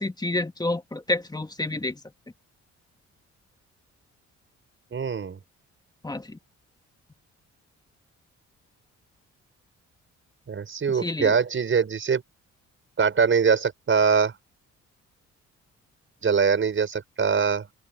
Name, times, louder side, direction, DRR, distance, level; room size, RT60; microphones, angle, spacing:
voice 1, 0.0-2.0 6.0-6.4 11.0-11.4, left 2 dB, 15° left, 1.9 m, -29 dB
voice 2, 4.9-5.4 10.5-12.2 13.0-14.3 16.2-17.7, right 6 dB, 40° right, 5.8 m, -23 dB
open air
cardioid pair, 90°, 30 cm